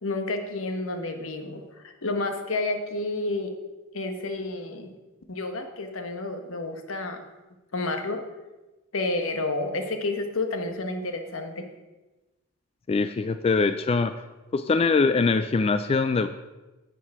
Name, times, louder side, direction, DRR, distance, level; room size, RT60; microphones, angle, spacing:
voice 1, 0.0-3.5 3.9-4.9 5.3-7.2 7.7-8.2 8.9-11.7, left 2 dB, 80° left, 6 dB, 1.2 m, -30 dB
voice 2, 12.9-14.2 14.5-16.3, left 4 dB, 30° left, 10 dB, 0.3 m, -23 dB
10.0 x 7.4 x 4.8 m, 1.1 s
head